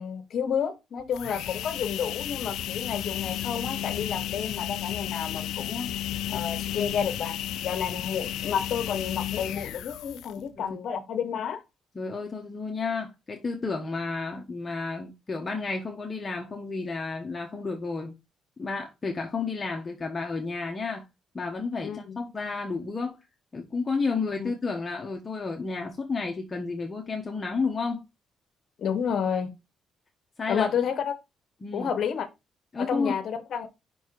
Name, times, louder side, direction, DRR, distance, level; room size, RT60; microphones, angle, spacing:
voice 1, 0.0-5.9 6.3-7.4 7.6-11.6 21.8-22.2 24.4-24.5 28.8-29.5 30.5-31.2 31.7-32.3 32.8-33.7, left 7 dB, 65° left, 1.0 m, -30 dB
sound 1, 1.0-10.5, left 12 dB, 85° left, 0.4 m, -33 dB
voice 2, 11.9-18.2 18.6-21.0 21.3-23.2 23.5-28.0 30.4-30.7 31.6-31.9 32.7-33.2, left 4 dB, 30° left, 1.2 m, -31 dB
5.6 x 4.5 x 4.7 m
cardioid pair, 90°, 0 cm